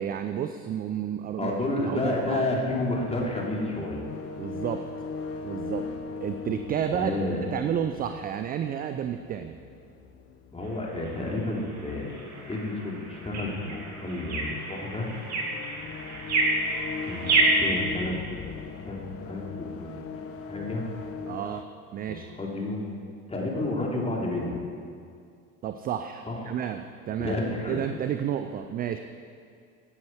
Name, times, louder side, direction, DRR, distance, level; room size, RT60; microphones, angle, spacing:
voice 1, 0.0-1.5 1.8-2.4 4.4-4.9 5.4-5.9 6.2-7.1 7.5-9.6 21.3-21.6 21.9-22.3 25.6-27.4 27.7-29.0, right 9 dB, 20° right, 8 dB, 0.4 m, -31 dB
voice 2, 1.4-4.0 6.9-7.4 10.5-12.2 12.5-15.1 17.0-18.1 18.9-20.8 22.1-22.8 23.3-24.6 26.3-26.5 27.2-27.8, left 2 dB, 15° left, -2 dB, 3.0 m, -31 dB
sound 1, 1.8-21.6, left 5 dB, 30° left, 0.9 m, -40 dB
sound 2, 10.6-17.7, right 2 dB, 35° right, 2.8 m, -29 dB
16.0 x 9.4 x 4.6 m, 2.3 s
figure-of-eight pair, 70°, 44 cm